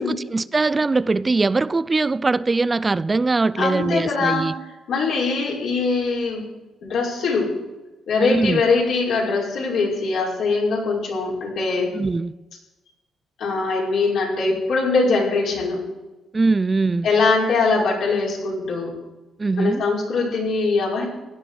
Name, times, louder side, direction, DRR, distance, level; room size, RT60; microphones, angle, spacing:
voice 1, 0.0-4.5 8.2-8.6 11.9-12.3 16.3-17.1 19.4-19.8, right 3 dB, 25° right, 0.4 m, -21 dB
voice 2, 3.6-4.5 4.9-6.4 6.8-7.5 8.1-11.9 13.4-15.8 17.0-18.9 19.6-21.0, left 4 dB, 75° left, 5.8 m, -22 dB
17.0 x 12.5 x 5.0 m
cardioid pair, 90°, 0 cm